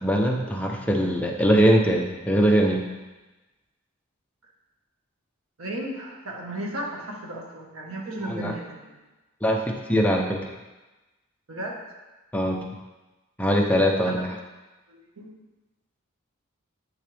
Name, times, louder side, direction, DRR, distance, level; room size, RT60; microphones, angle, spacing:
voice 1, 0.0-2.9 8.3-8.5 9.4-10.4 12.3-12.6 13.4-14.4, equal, 5° left, 1 dB, 0.6 m, -22 dB
voice 2, 5.6-8.9 11.5-11.8 14.0-14.2 14.9-15.3, right 1 dB, 75° right, -1 dB, 1.5 m, -34 dB
8.7 x 6.4 x 3.4 m, 1.1 s
head